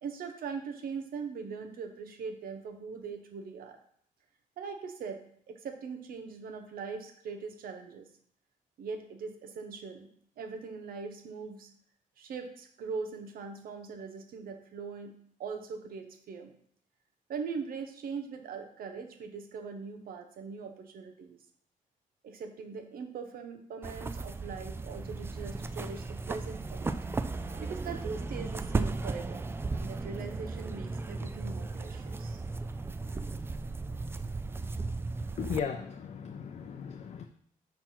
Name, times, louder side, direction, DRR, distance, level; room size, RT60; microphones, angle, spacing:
voice 1, 0.0-3.8 4.6-8.1 8.8-10.1 10.4-11.7 12.2-16.5 17.3-21.4 22.2-27.0 27.3-32.4, right 5 dB, 85° right, 5 dB, 1.1 m, -41 dB
sound 1, 23.8-35.6, right 3 dB, 15° right, 0.3 m, -36 dB
voice 2, 35.4-37.3, left 7 dB, 50° left, 4 dB, 0.6 m, -36 dB
5.9 x 4.6 x 5.8 m, 0.64 s
wide cardioid pair, 145°, 15 cm